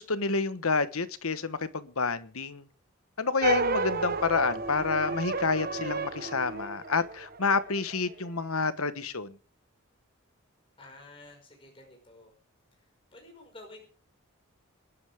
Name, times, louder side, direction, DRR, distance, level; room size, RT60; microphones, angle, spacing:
voice 1, 0.0-2.6 3.2-9.3, left 4 dB, 80° left, 1.2 m, -29 dB
sound 1, 3.4-8.0, right 4 dB, 40° right, 1.1 m, -32 dB
voice 2, 10.8-12.3 12.8-13.9, left 2 dB, 25° left, 5.4 m, -51 dB
26.5 x 11.0 x 3.6 m
head